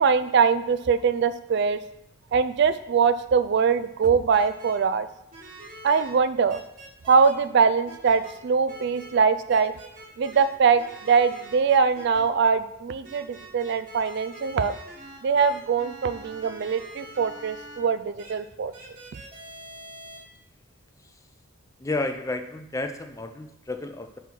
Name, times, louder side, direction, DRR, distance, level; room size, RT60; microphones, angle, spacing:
voice 1, 0.0-1.8 2.3-5.1 5.8-6.6 7.1-9.7 10.2-14.7 15.2-18.7, right 5 dB, 55° right, 12 dB, 0.3 m, -22 dB
sound 1, 4.3-4.7 5.3-6.1 6.5-7.3 7.8-8.3 8.7-9.1 9.5-10.5 10.8-12.2 13.0-17.8 18.2-18.3 18.7-20.2, right 1 dB, 40° right, 1.7 m, -44 dB
voice 2, 21.8-24.2, left 2 dB, 15° left, 7 dB, 0.4 m, -31 dB
5.5 x 4.4 x 6.0 m, 0.82 s
head